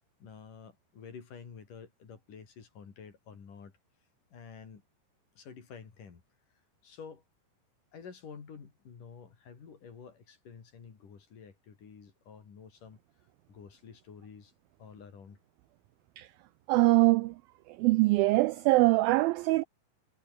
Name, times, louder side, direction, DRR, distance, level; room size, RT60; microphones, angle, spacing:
voice 1, 0.2-3.7 4.3-4.8 5.3-6.2 6.8-7.2 7.9-13.0 13.5-14.5 14.8-15.4, left 6 dB, 50° left, 5.0 m, -50 dB
voice 2, 16.7-17.3 17.8-19.6, right 20 dB, 85° right, 2.1 m, -23 dB
omnidirectional pair, 4.8 m